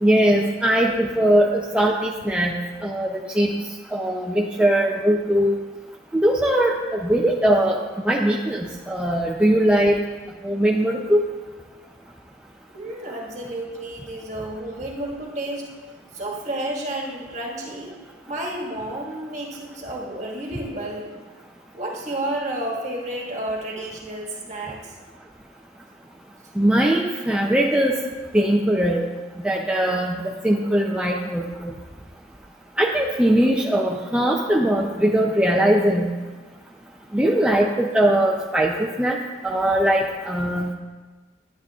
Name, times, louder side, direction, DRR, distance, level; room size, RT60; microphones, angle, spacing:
voice 1, 0.0-3.5 3.9-5.6 6.1-7.8 8.1-10.0 10.4-11.2 26.6-28.0 28.3-29.0 29.4-31.7 32.8-36.1 37.1-39.2 39.4-40.7, right 1 dB, 5° right, -1 dB, 0.5 m, -20 dB
voice 2, 12.7-15.7 16.1-18.0 18.3-21.1 21.7-24.9, right 1 dB, 35° right, -1 dB, 1.7 m, -31 dB
11.5 x 9.7 x 2.4 m, 1.3 s
head